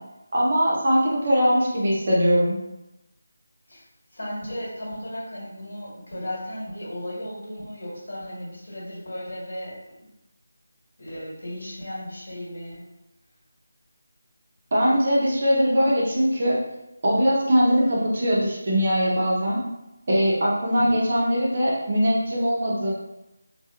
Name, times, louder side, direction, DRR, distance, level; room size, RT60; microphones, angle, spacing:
voice 1, 0.3-2.6 14.7-16.6 17.0-19.6 20.1-22.9, equal, 40° right, -5 dB, 0.7 m, -21 dB
voice 2, 4.1-10.1 11.0-12.8 20.7-21.0, equal, 75° left, -6 dB, 1.3 m, -35 dB
2.8 x 2.3 x 2.3 m, 0.93 s
figure-of-eight pair, 175°, 0 cm